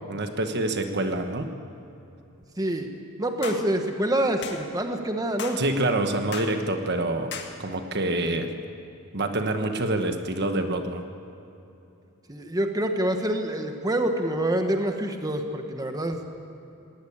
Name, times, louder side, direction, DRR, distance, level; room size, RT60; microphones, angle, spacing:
voice 1, 0.1-1.5 5.6-7.3 7.6-8.5 9.1-11.0, right 2 dB, 50° right, 6 dB, 1.3 m, -26 dB
voice 2, 2.6-2.9 3.2-5.6 12.3-16.2, right 1 dB, 15° right, 5 dB, 1.3 m, -26 dB
sound 1, 3.4-3.6 4.4-4.6 5.4-5.6 6.3-6.5 7.3-7.5, left 6 dB, 50° left, 1.8 m, -35 dB
19.0 x 19.0 x 8.6 m, 2.8 s
head